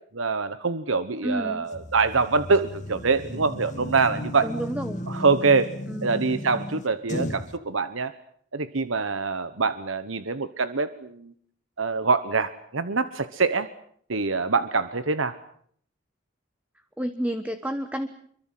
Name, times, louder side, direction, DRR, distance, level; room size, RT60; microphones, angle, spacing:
voice 1, 0.1-4.5 5.1-5.7 6.0-8.1 8.5-11.3 11.8-13.7 14.1-15.4, right 4 dB, 85° right, 12 dB, 1.2 m, -24 dB
voice 2, 1.2-1.7 4.4-5.1 5.9-6.3 17.0-18.1, right 1 dB, 5° right, 9 dB, 1.2 m, -30 dB
sound 1, 1.7-7.5, left 1 dB, 35° left, 1.7 m, -35 dB
26.0 x 23.5 x 7.6 m, 0.63 s
head